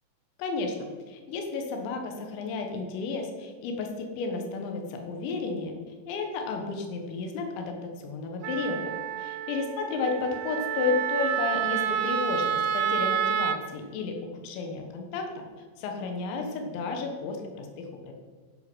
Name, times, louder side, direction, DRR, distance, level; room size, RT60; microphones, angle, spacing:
voice 1, 0.4-5.7 6.1-8.9 9.2-15.4 15.8-18.1, left 4 dB, 70° left, 3 dB, 3.5 m, -32 dB
Wind instrument woodwind instrument, 8.4-13.6, right 9 dB, 80° right, 3.0 m, -29 dB
13.0 x 5.9 x 6.2 m, 1.5 s
omnidirectional pair, 5.7 m